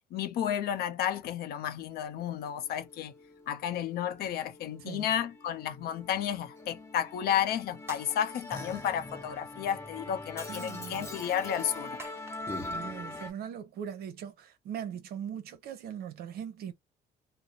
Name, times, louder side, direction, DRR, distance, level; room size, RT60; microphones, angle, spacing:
voice 1, 0.0-3.1 3.5-12.0, left 10 dB, 65° left, 0.6 m, -32 dB
Musical instrument, 2.1-13.3, left 2 dB, 15° left, 0.8 m, -43 dB
sound 1, 7.8-9.3 12.0-12.9, right 3 dB, 15° right, 0.6 m, -51 dB
voice 2, 10.5-11.1 12.6-16.7, right 9 dB, 65° right, 0.6 m, -40 dB
2.5 x 2.0 x 2.7 m
cardioid pair, 110°, 17 cm